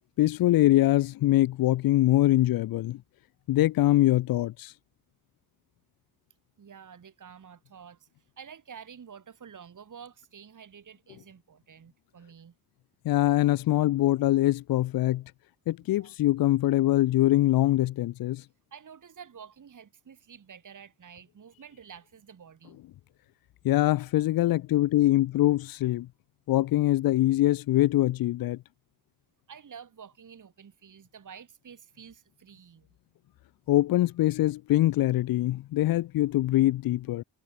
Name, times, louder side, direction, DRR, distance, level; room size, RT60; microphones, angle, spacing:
voice 1, 0.2-3.0 3.5-4.7 13.0-15.2 15.7-18.4 23.6-26.1 26.5-28.6 33.7-37.2, left 15 dB, 65° left, 0.6 m, -23 dB
voice 2, 6.6-12.5 15.9-16.1 18.7-22.8 29.5-32.9, right 7 dB, 50° right, 2.3 m, -49 dB
supercardioid pair, 50°, 39 cm